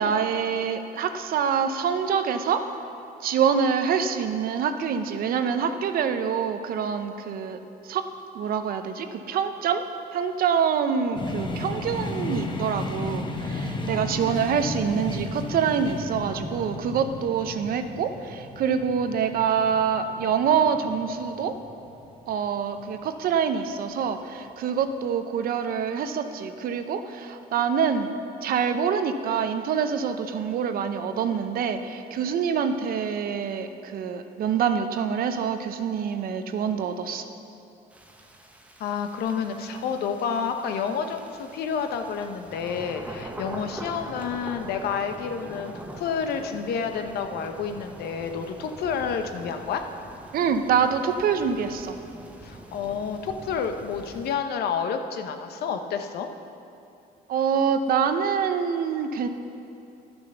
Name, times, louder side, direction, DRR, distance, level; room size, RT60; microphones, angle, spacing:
voice 1, 0.0-2.6 3.2-7.6 7.8-8.0 8.3-9.8 10.1-21.5 22.3-28.1 28.4-37.3 50.3-52.0 57.3-59.3, right 7 dB, 60° right, 8 dB, 0.7 m, -26 dB
sound 1, 11.1-22.9, left 2 dB, 30° left, 1.0 m, -34 dB
sound 2, 37.9-54.3, right 1 dB, 10° right, 1.0 m, -43 dB
voice 2, 38.8-49.9 52.4-56.3, left 6 dB, 70° left, 6 dB, 0.9 m, -29 dB
11.5 x 6.9 x 6.7 m, 2.7 s
cardioid pair, 110°, 17 cm